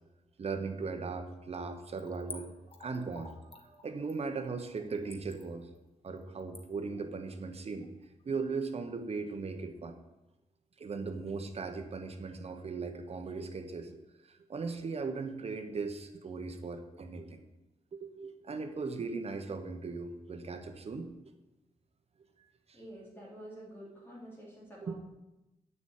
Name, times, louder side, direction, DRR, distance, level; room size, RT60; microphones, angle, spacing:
voice 1, 0.4-2.5 2.8-5.7 6.0-7.9 8.2-10.0 10.8-14.0 14.3-17.4 17.9-21.1 22.7-22.8 24.8-24.9, right 4 dB, 50° right, 6 dB, 1.1 m, -38 dB
Splash splatter / Trickle dribble, 2.0-8.4 8.7-8.8, left 3 dB, 40° left, 1.3 m, -51 dB
voice 2, 22.7-24.9, equal, 15° left, -5 dB, 4.0 m, -48 dB
8.8 x 7.0 x 8.3 m, 0.97 s
wide cardioid pair, 180°, 14 cm